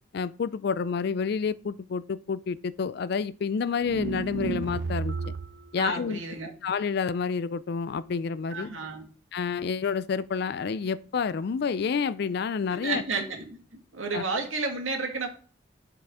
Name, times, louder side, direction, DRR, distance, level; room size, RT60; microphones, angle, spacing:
voice 1, 0.1-5.3 5.7-6.2 6.6-8.7 9.3-13.0 14.1-14.2, left 5 dB, 55° left, 0.4 m, -29 dB
sound 1, 3.8-5.6, right 4 dB, 60° right, 0.5 m, -32 dB
voice 2, 5.8-6.5 8.5-9.1 12.7-13.6 13.9-15.3, right 4 dB, 90° right, 1.9 m, -31 dB
11.0 x 4.8 x 3.6 m
head